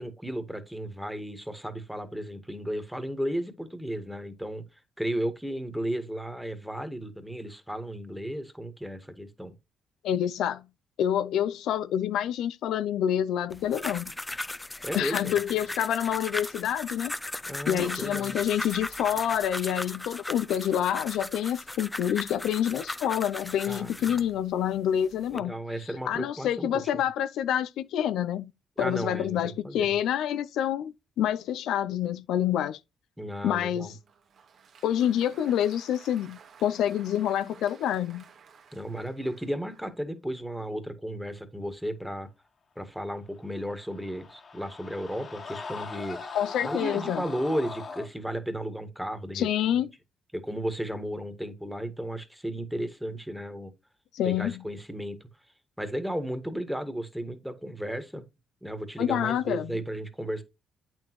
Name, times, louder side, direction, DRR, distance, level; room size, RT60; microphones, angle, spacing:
voice 1, 0.0-4.6 5.0-9.5 14.8-15.3 17.5-18.4 23.7-24.3 25.3-27.0 28.8-29.9 33.2-33.9 38.7-42.3 42.7-46.2 46.6-49.5 50.3-53.7 54.2-55.2 55.8-58.2 58.6-60.4, equal, ahead, 1.7 m, -34 dB
voice 2, 10.0-10.6 11.0-14.1 14.9-17.1 17.7-25.5 26.1-28.5 28.8-32.8 33.4-33.9 34.8-38.2 46.3-47.2 49.3-49.9 54.1-54.6 59.0-59.7, left 10 dB, 80° left, 0.5 m, -27 dB
sound 1, 13.5-24.3 24.9-25.4, left 2 dB, 15° left, 0.6 m, -37 dB
Applause, 33.8-40.0, right 6 dB, 60° right, 1.5 m, -54 dB
sound 2, 43.6-48.1, left 4 dB, 45° left, 1.6 m, -40 dB
8.5 x 6.2 x 3.1 m
cardioid pair, 90°, 0 cm